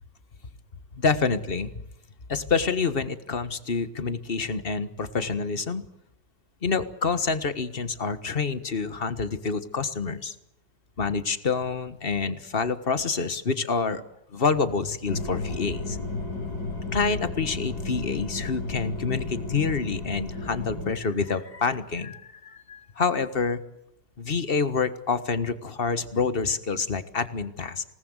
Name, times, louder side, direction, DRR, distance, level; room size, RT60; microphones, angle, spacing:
voice 1, 0.9-1.7 2.3-5.8 6.6-10.3 11.0-14.0 14.3-16.0 16.9-23.6 24.2-27.8, left 4 dB, 35° left, 12 dB, 1.5 m, -27 dB
sound 1, 15.0-20.9, left 3 dB, 65° left, 5.9 m, -33 dB
26.5 x 19.0 x 8.1 m, 0.86 s
omnidirectional pair, 1.9 m